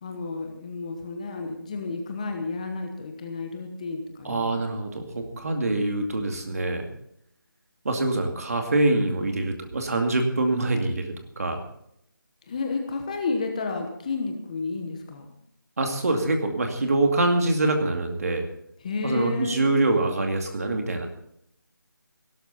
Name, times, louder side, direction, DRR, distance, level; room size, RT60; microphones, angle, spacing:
voice 1, 0.0-4.7 12.5-15.3 18.8-19.7, left 4 dB, 20° left, 4 dB, 1.1 m, -31 dB
voice 2, 4.2-6.9 7.8-11.6 15.8-18.5 19.0-21.1, right 2 dB, 45° right, 4 dB, 2.4 m, -25 dB
17.5 x 12.5 x 4.2 m, 0.74 s
figure-of-eight pair, 170°, 11 cm